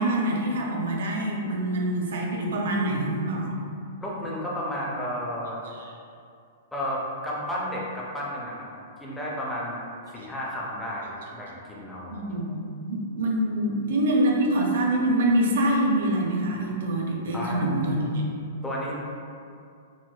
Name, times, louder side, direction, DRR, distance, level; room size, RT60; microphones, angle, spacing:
voice 1, 0.0-3.5 5.7-5.8 10.2-10.3 12.1-18.2, right 1 dB, 70° right, -1 dB, 0.5 m, -25 dB
voice 2, 4.0-5.6 6.7-8.7 9.0-9.8 10.1-12.2 17.3-17.6 18.6-18.9, equal, 5° left, -6 dB, 0.4 m, -32 dB
4.2 x 2.1 x 2.3 m, 2.4 s
hypercardioid pair, 165°, 0 cm